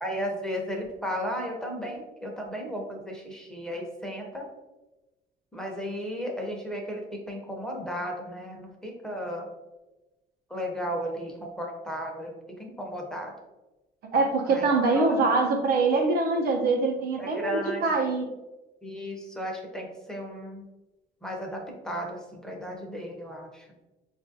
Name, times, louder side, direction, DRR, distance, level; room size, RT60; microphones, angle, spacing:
voice 1, 0.0-4.5 5.5-9.5 10.5-13.3 14.5-15.3 17.2-17.8 18.8-20.6 21.2-23.7, equal, 5° left, 0 dB, 0.8 m, -35 dB
voice 2, 14.1-18.3, right 3 dB, 65° right, 2 dB, 0.8 m, -24 dB
4.1 x 2.5 x 2.7 m, 1.1 s
cardioid pair, 110°, 17 cm